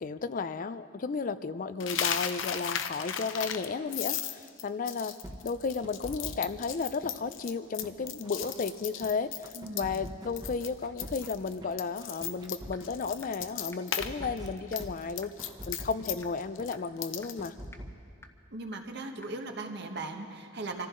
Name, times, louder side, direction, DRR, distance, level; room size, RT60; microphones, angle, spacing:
voice 1, 0.0-5.2 5.4-15.3 15.7-17.5, left 4 dB, 45° left, 13 dB, 0.4 m, -33 dB
Coin (dropping), 1.8-10.1 10.4-10.7 11.0-14.1 14.4-17.5, left 9 dB, 85° left, 0.7 m, -36 dB
sound 1, 5.2-6.7 7.0-9.1 9.4-11.7 12.0-13.7 14.0-16.3 16.6-16.7 17.0-18.0, equal, 20° right, 1.2 m, -44 dB
voice 2, 9.5-10.1 18.5-20.9, right 2 dB, 60° right, 4 dB, 1.3 m, -38 dB
sound 2, 12.7-12.8 13.2-13.3 13.7-13.8 14.2-14.3 14.7-14.8 15.2-15.3 15.7-15.8 16.2-16.3 16.7-16.8 17.2-17.3 17.7-17.8 18.2-18.3 18.7-18.8 19.2-19.3, left 2 dB, 15° left, 0.8 m, -48 dB
25.5 x 14.5 x 3.8 m, 2.3 s
head